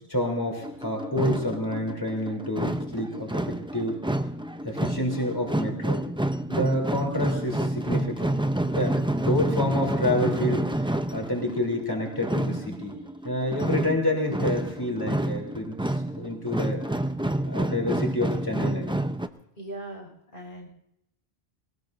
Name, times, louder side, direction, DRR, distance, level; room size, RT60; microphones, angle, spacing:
voice 1, 0.1-4.0 4.6-6.0 6.5-8.5 8.8-13.0 13.2-16.8 17.4-18.9, left 1 dB, 20° left, 0 dB, 3.5 m, -28 dB
sound 1, 0.6-19.3, right 1 dB, 5° right, 0.4 m, -29 dB
voice 2, 19.6-20.7, right 1 dB, 65° left, -1 dB, 5.4 m, -39 dB
24.0 x 19.5 x 2.6 m, 0.80 s
omnidirectional pair, 1.0 m